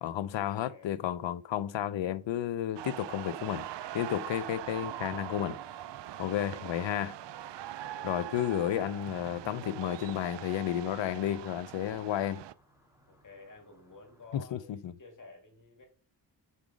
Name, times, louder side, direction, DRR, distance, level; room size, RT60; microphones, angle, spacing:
voice 1, 0.0-3.7 3.9-5.6 6.2-7.2 8.0-12.4 14.3-14.9, left 11 dB, 80° left, 0.7 m, -32 dB
voice 2, 0.7-1.0 7.6-8.7 13.1-15.8, left 3 dB, 45° left, 2.6 m, -53 dB
sound 1, 2.8-12.5, right 13 dB, 70° right, 0.5 m, -42 dB
sound 2, 3.4-14.6, left 1 dB, 5° right, 3.0 m, -59 dB
5.5 x 4.9 x 6.1 m
cardioid pair, 85°, 44 cm